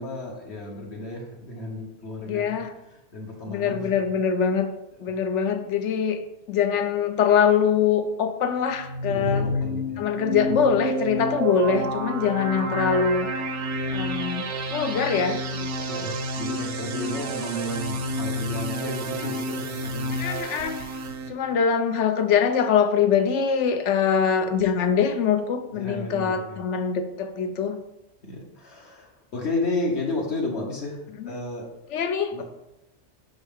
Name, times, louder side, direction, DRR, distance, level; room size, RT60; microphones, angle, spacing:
voice 1, 0.0-2.6 2.9-3.9 9.1-10.0 10.5-10.6 15.8-20.2 25.7-26.6 28.2-31.7 32.3-32.4, left 2 dB, 70° left, -2 dB, 1.2 m, -32 dB
voice 2, 2.3-2.7 3.5-4.7 5.0-6.2 6.5-9.5 10.0-13.3 13.9-16.1 20.1-20.9 21.3-27.8 31.2-31.3 31.9-32.4, left 7 dB, 90° left, 7 dB, 0.9 m, -23 dB
sound 1, 8.7-21.3, right 1 dB, 90° right, 1.0 m, -30 dB
5.3 x 5.3 x 3.5 m, 0.92 s
omnidirectional pair, 1.2 m